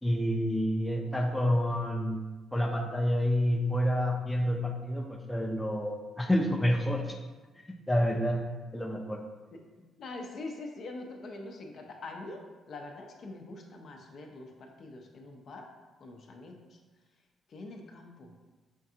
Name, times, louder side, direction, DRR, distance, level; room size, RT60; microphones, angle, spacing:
voice 1, 0.0-2.2 2.5-7.2 7.9-8.4 8.7-9.2, equal, 10° left, 1 dB, 0.5 m, -28 dB
voice 2, 9.5-12.4 12.7-15.7 16.0-16.8 17.5-18.3, left 2 dB, 60° left, 2 dB, 0.5 m, -44 dB
5.2 x 2.4 x 2.7 m, 1.2 s
cardioid pair, 90°, 0 cm